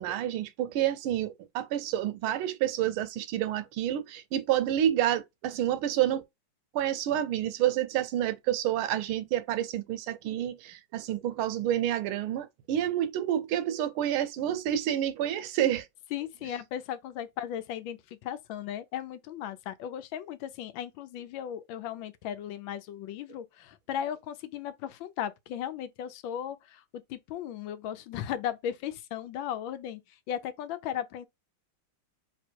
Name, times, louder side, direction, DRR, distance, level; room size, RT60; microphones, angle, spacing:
voice 1, 0.0-6.2 6.7-15.9, right 11 dB, 80° right, 1.5 m, -29 dB
voice 2, 16.1-30.0 30.3-31.3, left 10 dB, 75° left, 1.3 m, -36 dB
3.4 x 3.0 x 4.5 m
omnidirectional pair, 2.3 m